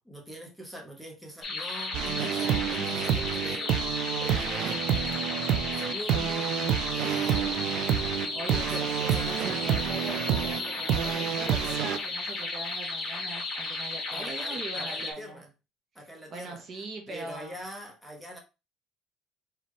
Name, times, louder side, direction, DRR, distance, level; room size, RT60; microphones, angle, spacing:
voice 1, 0.0-3.9 4.2-6.6 6.9-8.4 8.6-9.6 14.1-15.5 15.9-16.6 17.1-18.4, equal, 5° right, 1.1 m, -44 dB
sound 1, 1.4-15.1, left 3 dB, 30° left, 1.8 m, -34 dB
sound 2, 1.9-12.0, right 9 dB, 60° right, 0.4 m, -28 dB
sound 3, 5.0-14.8, right 2 dB, 20° right, 2.1 m, -51 dB
voice 2, 8.3-15.4 16.3-17.5, right 2 dB, 40° right, 1.0 m, -41 dB
4.3 x 3.0 x 3.1 m
cardioid pair, 155°, 0 cm